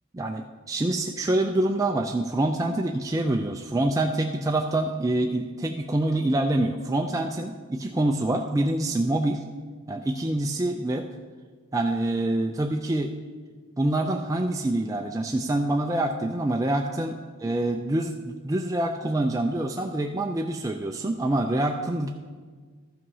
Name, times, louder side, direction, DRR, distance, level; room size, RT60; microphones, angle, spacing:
voice 1, 0.1-9.4 9.9-11.1 11.7-13.1 13.8-17.2 17.4-22.2, right 1 dB, 15° right, 2 dB, 0.4 m, -26 dB
13.0 x 5.7 x 5.5 m, 1.5 s
head